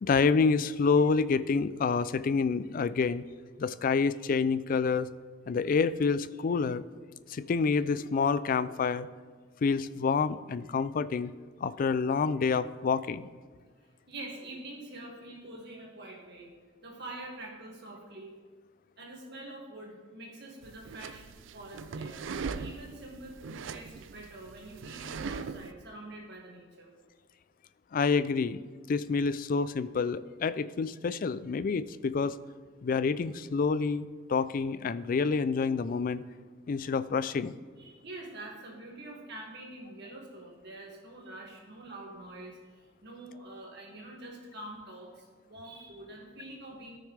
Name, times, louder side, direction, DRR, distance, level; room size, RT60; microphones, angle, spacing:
voice 1, 0.0-3.2 3.6-5.1 5.5-6.8 7.3-9.1 9.6-11.3 11.6-13.3 27.9-28.6 28.9-32.4 32.8-36.2 36.7-37.5, left 5 dB, 45° left, 15 dB, 0.3 m, -28 dB
voice 2, 14.1-16.5 16.8-18.3 19.0-21.3 21.5-26.9 37.8-47.0, right 1 dB, 60° right, -1 dB, 2.1 m, -45 dB
sound 1, 20.6-25.7, right 5 dB, 80° right, 0.4 m, -40 dB
13.5 x 6.4 x 3.4 m, 1.5 s
head